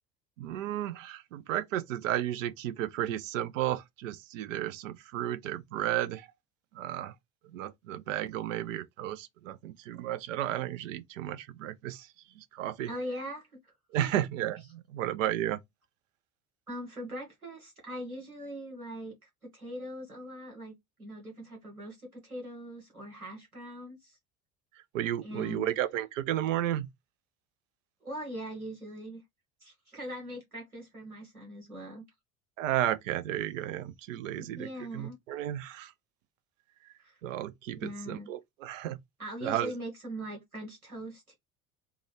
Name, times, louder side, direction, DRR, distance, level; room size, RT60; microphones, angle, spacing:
voice 1, 0.4-6.3 6.7-7.1 7.5-12.1 12.4-12.9 13.9-15.6 24.9-26.9 32.6-34.7 34.9-35.9 37.2-39.0 39.4-39.7, right 12 dB, 65° right, 0.5 m, -33 dB
voice 2, 12.8-13.6 14.0-14.2 16.7-24.2 25.2-25.7 28.0-29.2 29.6-32.0 34.3-35.2 37.0-37.2 37.7-38.3 39.2-41.3, equal, 90° right, 1.4 m, -41 dB
3.5 x 2.2 x 3.3 m
figure-of-eight pair, 60°, 43 cm